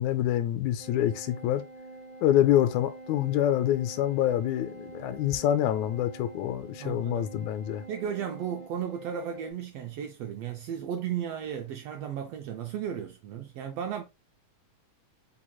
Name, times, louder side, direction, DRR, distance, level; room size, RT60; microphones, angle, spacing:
voice 1, 0.0-1.6 2.2-7.9, left 12 dB, 85° left, 1.9 m, -26 dB
sound 1, 0.8-9.5, right 2 dB, 15° left, 2.8 m, -46 dB
voice 2, 6.8-7.2 7.9-14.0, right 8 dB, 80° right, 1.4 m, -35 dB
4.9 x 4.3 x 2.3 m
omnidirectional pair, 3.3 m